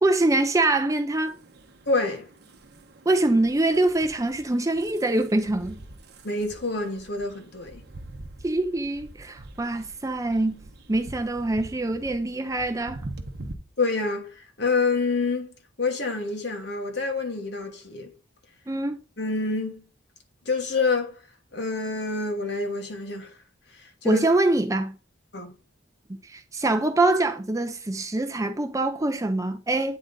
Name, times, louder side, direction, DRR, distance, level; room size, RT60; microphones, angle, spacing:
voice 1, 0.0-1.3 3.1-5.8 8.4-13.0 18.7-19.0 24.0-25.0 26.1-30.0, right 2 dB, 15° right, 0.5 m, -24 dB
sound 1, 1.1-13.5, right 2 dB, 50° right, 0.8 m, -44 dB
voice 2, 1.9-2.3 6.2-7.8 13.8-15.5 15.8-18.1 19.2-19.8 20.4-21.1 21.5-23.3 23.7-24.3 25.3-25.5, left 3 dB, 55° left, 1.3 m, -27 dB
8.6 x 3.9 x 3.8 m
head